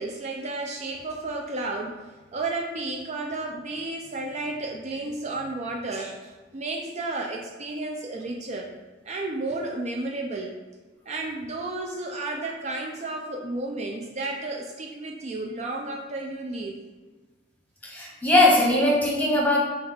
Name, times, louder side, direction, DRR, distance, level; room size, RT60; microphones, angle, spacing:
voice 1, 0.0-1.9 2.3-8.7 9.0-10.5 11.1-16.8, right 2 dB, 35° right, 1 dB, 0.4 m, -32 dB
voice 2, 17.8-19.6, left 1 dB, 10° left, -4 dB, 0.9 m, -20 dB
6.0 x 2.4 x 3.5 m, 1.2 s
head